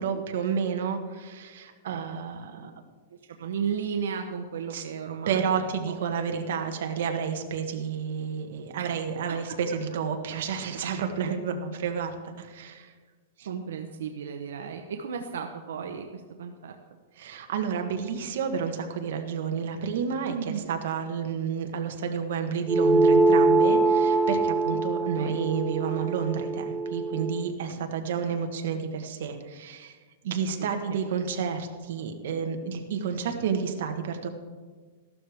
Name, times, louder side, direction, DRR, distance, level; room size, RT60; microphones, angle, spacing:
voice 1, 0.0-2.7 4.7-4.9 5.3-12.9 13.4-13.5 17.2-29.9 30.2-34.3, right 6 dB, 65° right, 5 dB, 1.4 m, -30 dB
voice 2, 3.4-6.0 8.8-8.9 13.5-16.7 20.3-20.6 25.0-25.4 30.4-31.0, right 7 dB, 90° right, 5 dB, 0.8 m, -35 dB
sound 1, 22.7-27.5, right 3 dB, 5° right, 0.3 m, -23 dB
14.0 x 12.0 x 3.5 m, 1.5 s
supercardioid pair, 165°, 0 cm